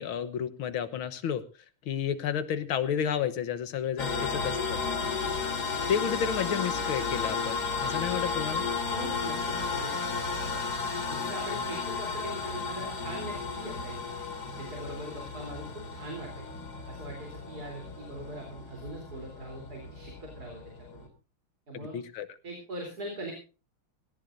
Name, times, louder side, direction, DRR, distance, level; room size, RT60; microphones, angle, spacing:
voice 1, 0.0-1.4 1.9-4.8 5.9-8.7 21.7-22.3, left 8 dB, 75° left, 13 dB, 1.9 m, -31 dB
sound 1, 4.0-21.1, left 4 dB, 45° left, 2.9 m, -33 dB
voice 2, 5.0-5.3 8.9-9.9 10.3-10.7 11.1-14.0 14.5-16.5 16.9-20.6 20.9-21.1 21.7-22.0 22.4-23.3, right 1 dB, 45° right, 1 dB, 4.2 m, -41 dB
18.5 x 17.0 x 2.6 m, 0.32 s
omnidirectional pair, 2.4 m